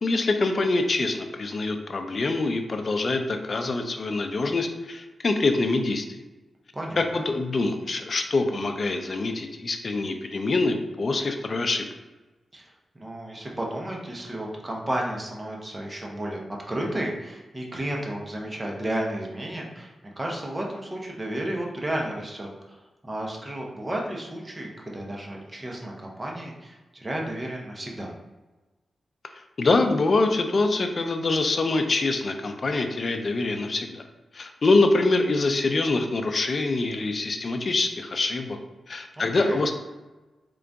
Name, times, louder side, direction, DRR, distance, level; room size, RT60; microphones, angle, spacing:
voice 1, 0.0-6.2 7.0-11.9 29.6-34.0 34.3-38.6 38.9-39.7, left 3 dB, 45° left, 6 dB, 0.4 m, -25 dB
voice 2, 6.7-7.2 12.5-28.1 39.1-39.6, right 1 dB, 20° right, -1 dB, 0.7 m, -33 dB
3.8 x 2.5 x 3.4 m, 1.2 s
wide cardioid pair, 120°, 0 cm